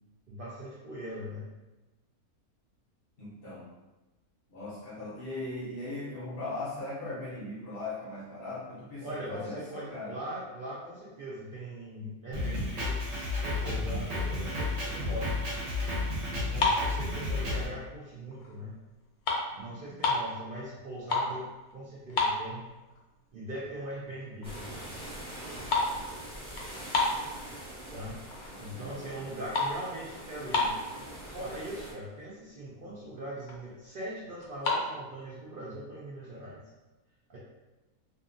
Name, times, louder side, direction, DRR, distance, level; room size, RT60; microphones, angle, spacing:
voice 1, 0.3-1.5 9.0-13.0 13.4-15.5 16.5-18.8 19.6-22.7 23.3-24.7 27.9-28.2 28.6-30.7 31.3-36.6 37.3-37.4, right 1 dB, 80° right, -7 dB, 0.4 m, -40 dB
voice 2, 3.2-3.7 4.5-10.2 19.5-19.9 28.5-29.3, left 2 dB, 55° left, -7 dB, 0.6 m, -39 dB
Drum kit, 12.3-17.7, left 2 dB, 55° right, 1.1 m, -32 dB
sound 1, 16.6-17.8 18.3-18.6 18.9-20.3 20.8-21.4 21.7-21.8 22.1-23.0 23.4-23.5 24.1-24.2 24.4-24.8 25.0-27.8 28.3-28.7 29.0-31.0 31.7-31.8 32.0-32.2 32.6-32.7 33.0-33.6 34.4-34.8, left 3 dB, 85° left, 1.1 m, -30 dB
sound 2, 24.4-31.9, right 1 dB, 10° left, 0.4 m, -43 dB
2.7 x 2.4 x 2.4 m, 1.1 s
omnidirectional pair, 1.6 m